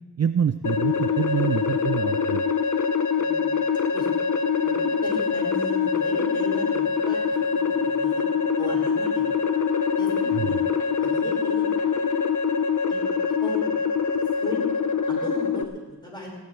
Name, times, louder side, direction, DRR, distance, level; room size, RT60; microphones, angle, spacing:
voice 1, 0.2-2.4 10.3-10.6, right 8 dB, 40° right, 10 dB, 0.4 m, -26 dB
sound 1, 0.6-15.6, left 6 dB, 50° left, 0.8 m, -24 dB
voice 2, 3.1-3.5 3.9-4.1 4.6-7.2 7.4-8.2 8.6-9.3 10.0-10.6 11.0-11.6 12.9-13.0 13.4-13.7 14.4-14.6 15.1-16.3, equal, 10° left, -3 dB, 5.1 m, -36 dB
19.5 x 15.5 x 3.2 m, 1.2 s
wide cardioid pair, 105°, 40 cm